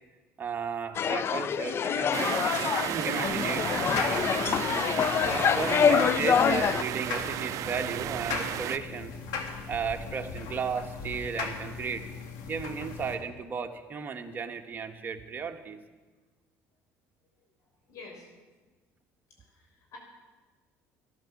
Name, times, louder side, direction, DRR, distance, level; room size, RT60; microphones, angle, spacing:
voice 1, 0.4-2.4 2.8-4.5 5.2-9.1 9.7-12.1 12.5-15.8, right 6 dB, 30° right, 4 dB, 1.4 m, -34 dB
sound 1, 0.9-6.8, left 8 dB, 40° left, 0.4 m, -26 dB
sound 2, 2.1-8.8, right 14 dB, 60° right, 0.4 m, -33 dB
sound 3, 3.3-13.1, left 5 dB, 85° left, 1.9 m, -38 dB
voice 2, 17.9-18.3 19.4-20.0, left 4 dB, 60° left, 0 dB, 5.9 m, -48 dB
13.5 x 12.0 x 7.2 m, 1.3 s
cardioid pair, 105°, 6 cm